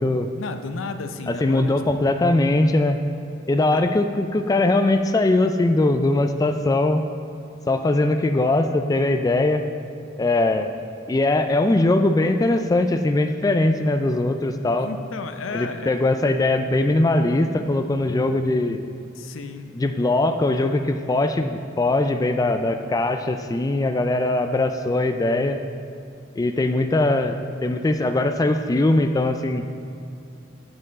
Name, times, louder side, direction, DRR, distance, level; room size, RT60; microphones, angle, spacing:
voice 1, 0.4-2.1 3.7-3.8 14.7-16.1 19.2-19.7, left 4 dB, 90° left, 8 dB, 0.5 m, -34 dB
voice 2, 1.3-3.0 3.5-7.0 7.7-9.6 10.2-10.7 11.1-14.9 15.5-18.8 19.8-25.6 26.4-29.6, left 2 dB, 20° left, 7 dB, 0.3 m, -21 dB
7.7 x 7.6 x 4.0 m, 2.5 s
head